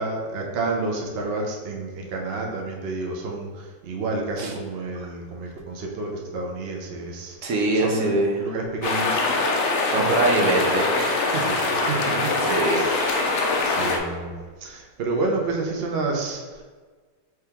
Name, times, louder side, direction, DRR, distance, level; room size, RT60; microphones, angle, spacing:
voice 1, 0.0-7.4 7.7-8.1 8.4-9.3 10.0-10.7 11.4-13.0 13.6-16.6, right 3 dB, 85° right, 0 dB, 0.5 m, -30 dB
voice 2, 7.4-8.3 9.9-11.8 12.5-12.9, right 2 dB, 65° right, 0 dB, 0.8 m, -24 dB
sound 1, 8.8-14.0, left 3 dB, 85° left, 0.6 m, -23 dB
4.7 x 2.9 x 3.5 m, 1.4 s
omnidirectional pair, 1.9 m